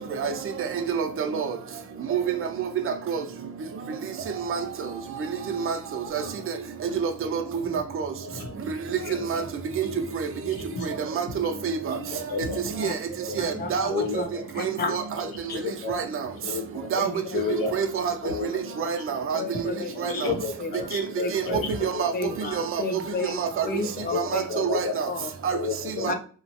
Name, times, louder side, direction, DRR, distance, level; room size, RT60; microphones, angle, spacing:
voice 1, 0.2-1.6 2.1-3.2 4.3-4.6 5.5-6.6 6.9-7.4 7.7-8.1 8.9-9.4 9.8-9.9 10.1-10.6 10.8-12.0 12.8-13.0 13.4-13.9 14.6-15.0 15.9-16.3 16.9-17.1 17.5-18.1 18.5-19.6 20.0-20.3 20.9-21.0 21.3-21.4 21.8-22.1 22.5-22.8 23.2-23.7 24.1-25.1 25.4-25.6 26.0-26.1, right 7 dB, 40° right, 0.4 m, -28 dB
voice 2, 12.3-12.6 13.9-14.4 15.6-16.0 16.5-16.9 17.3-17.7 18.2-18.5 20.0-21.6 21.9-22.0 24.1-24.9 25.5-26.1, left 5 dB, 90° left, 0.7 m, -30 dB
voice 3, 13.6-13.9 14.2-14.3 14.5-14.9 15.5-15.6 17.0-17.2 19.3-20.2 20.6-20.9 21.2-21.7 22.1-23.4 23.6-24.4 25.1-25.3 26.1-26.2, left 3 dB, 30° left, 0.5 m, -32 dB
2.9 x 2.1 x 2.8 m
cardioid pair, 120°, 34 cm